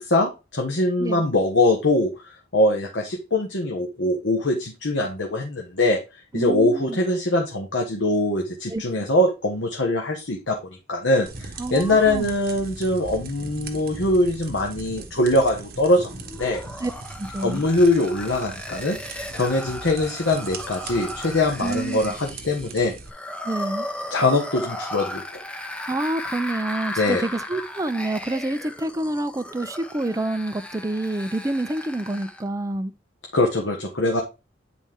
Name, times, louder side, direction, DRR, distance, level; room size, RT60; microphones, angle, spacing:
voice 1, 0.0-2.1 2.5-6.0 6.3-10.6 10.9-16.6 17.4-22.9 24.1-25.2 27.0-27.2 33.3-34.2, left 2 dB, 85° left, 1.3 m, -22 dB
voice 2, 6.3-7.0 8.7-8.8 11.6-12.3 16.8-16.9 17.2-17.6 21.6-22.0 23.4-23.9 25.9-32.9, right 2 dB, 20° right, 0.5 m, -28 dB
sound 1, 11.3-23.1, right 3 dB, 55° right, 1.2 m, -39 dB
sound 2, 15.8-32.5, left 1 dB, 5° left, 0.9 m, -36 dB
9.7 x 4.2 x 3.6 m
head